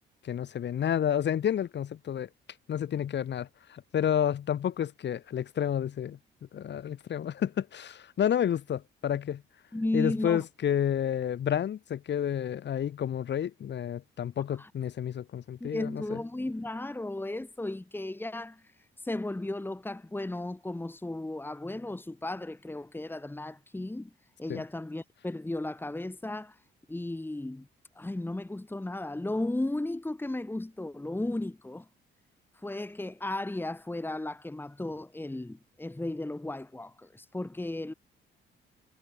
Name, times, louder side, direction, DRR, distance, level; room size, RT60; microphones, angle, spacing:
voice 1, 0.2-2.3 2.7-6.2 6.5-9.4 9.9-16.2 24.5-24.6, left 9 dB, 60° left, 4.8 m, -30 dB
voice 2, 9.7-10.4 14.6-14.7 15.6-18.6 19.0-24.1 24.4-26.6 26.9-27.7 28.0-31.9 32.6-37.9, left 2 dB, 10° left, 2.4 m, -35 dB
cardioid pair, 90°, 20 cm